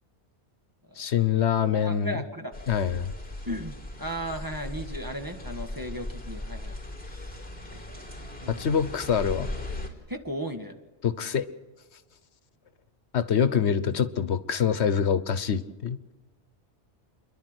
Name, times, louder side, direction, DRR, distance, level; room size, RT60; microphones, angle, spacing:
voice 1, 1.0-2.2 2.7-3.1 8.5-9.5 11.0-11.5 13.1-16.0, left 8 dB, 80° left, 13 dB, 1.2 m, -25 dB
voice 2, 1.7-2.6 3.5-8.1 8.4-8.9 10.1-10.7, equal, 20° right, 5 dB, 1.7 m, -37 dB
sound 1, 2.5-9.9, left 1 dB, 10° left, 3.8 m, -38 dB
30.0 x 11.5 x 8.0 m, 1.2 s
omnidirectional pair, 1.1 m